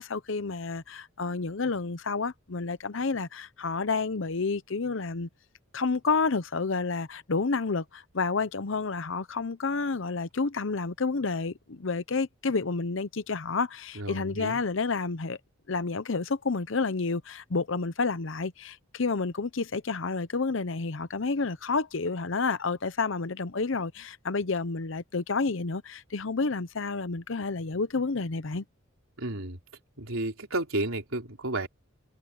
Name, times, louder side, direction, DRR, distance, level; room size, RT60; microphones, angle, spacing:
voice 1, 0.0-5.3 5.7-15.4 15.7-28.6, left 4 dB, 65° left, 0.8 m, -30 dB
voice 2, 13.9-14.6 29.2-29.6 30.0-31.7, right 2 dB, 80° right, 3.7 m, -32 dB
head